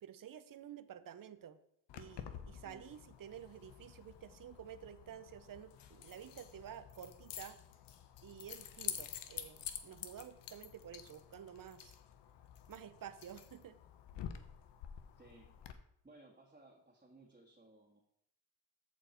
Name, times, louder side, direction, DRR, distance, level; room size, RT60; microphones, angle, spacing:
voice 1, 0.0-1.6 1.9-7.6 8.2-12.0 12.7-13.8, right 9 dB, 50° right, 13 dB, 0.8 m, -51 dB
Keys jangling, 1.9-15.7, left 10 dB, 80° left, 0.9 m, -49 dB
voice 2, 15.2-15.6 16.0-18.0, right 2 dB, 20° right, -3 dB, 2.0 m, -60 dB
14.0 x 4.6 x 4.5 m, 0.76 s
cardioid pair, 65°, 42 cm